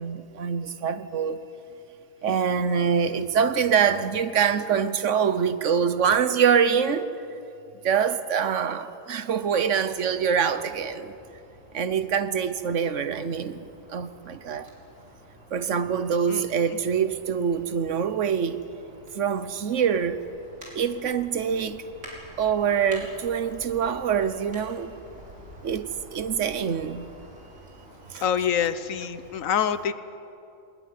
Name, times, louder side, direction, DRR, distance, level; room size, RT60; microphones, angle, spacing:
voice 1, 0.0-1.4 2.2-7.1 7.8-11.1 11.7-13.6 13.9-14.7 15.5-18.6 19.1-20.3 20.7-21.8 22.4-24.9 25.6-27.1 28.1-28.5, right 7 dB, 70° right, 1.2 m, -25 dB
sound 1, 9.4-29.4, right 1 dB, 90° right, 5.8 m, -49 dB
voice 2, 28.2-29.9, left 8 dB, 80° left, 1.3 m, -26 dB
20.5 x 20.0 x 9.4 m
omnidirectional pair, 1.4 m